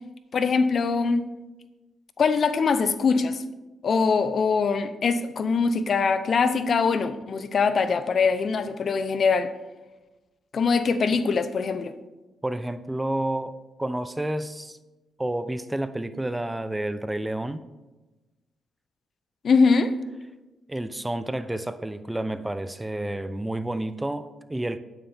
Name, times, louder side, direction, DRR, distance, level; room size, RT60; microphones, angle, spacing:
voice 1, 0.3-1.2 2.2-3.4 3.8-9.5 10.5-11.9 19.4-19.9, left 5 dB, 60° left, 12 dB, 0.7 m, -22 dB
voice 2, 12.4-14.8 15.2-17.6 20.7-24.8, right 1 dB, 15° right, 12 dB, 0.6 m, -30 dB
9.5 x 9.2 x 3.5 m, 1.1 s
cardioid pair, 65°, 0 cm